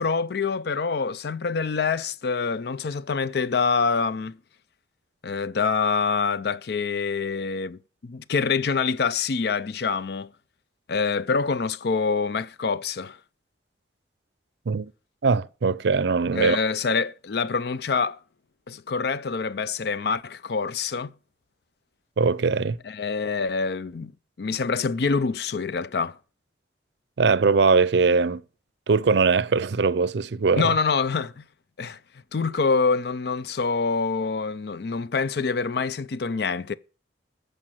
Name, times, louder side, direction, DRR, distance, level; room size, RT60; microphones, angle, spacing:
voice 1, 0.0-4.4 5.2-10.3 10.9-13.2 16.3-18.2 18.7-21.1 22.8-24.1 24.4-26.2 30.5-31.4 31.8-32.0 32.3-36.7, left 5 dB, 60° left, 0.5 m, -26 dB
voice 2, 15.2-16.6 22.2-22.8 27.2-28.4 28.9-30.7, right 4 dB, 70° right, 0.5 m, -21 dB
14.0 x 5.2 x 7.5 m
head